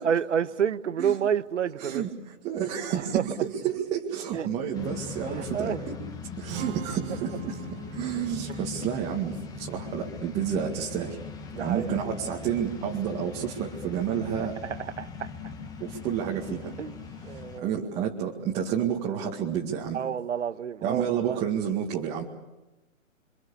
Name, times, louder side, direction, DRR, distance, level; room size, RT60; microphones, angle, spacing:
voice 1, 0.0-2.1 2.9-3.2 4.3-4.5 5.3-5.8 8.5-8.6 11.5-11.9 14.4-15.3 16.8-16.9 17.2-17.7 18.0-18.1 19.9-21.4, right 8 dB, 60° right, 1.3 m, -29 dB
voice 2, 1.8-6.0 6.4-11.2 11.6-14.6 15.8-16.7 17.3-20.0 20.8-22.2, right 8 dB, 15° right, 2.0 m, -30 dB
sound 1, 4.7-17.6, left 5 dB, 10° left, 1.6 m, -40 dB
Strum, 6.5-12.7, right 8 dB, 40° right, 1.7 m, -45 dB
28.0 x 25.5 x 7.0 m
hypercardioid pair, 145°, 41 cm